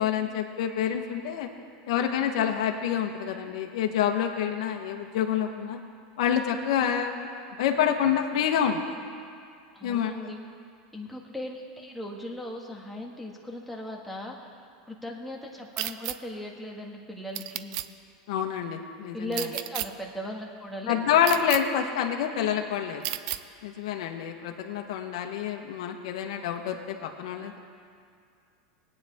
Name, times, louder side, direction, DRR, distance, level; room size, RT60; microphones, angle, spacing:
voice 1, 0.0-1.5 1.9-5.8 6.2-7.3 7.6-8.8 9.8-10.3 18.3-19.5 20.9-23.1 23.6-27.6, left 9 dB, 75° left, 3 dB, 1.1 m, -27 dB
voice 2, 9.7-10.4 10.9-14.4 14.8-17.8 19.1-21.2, left 1 dB, ahead, -2 dB, 1.8 m, -38 dB
sound 1, 15.8-16.2 17.3-17.9 19.3-19.9 21.2-21.6 23.0-23.4, right 14 dB, 65° right, 0.5 m, -31 dB
20.5 x 9.1 x 3.6 m, 2.3 s
supercardioid pair, 120°, 3 cm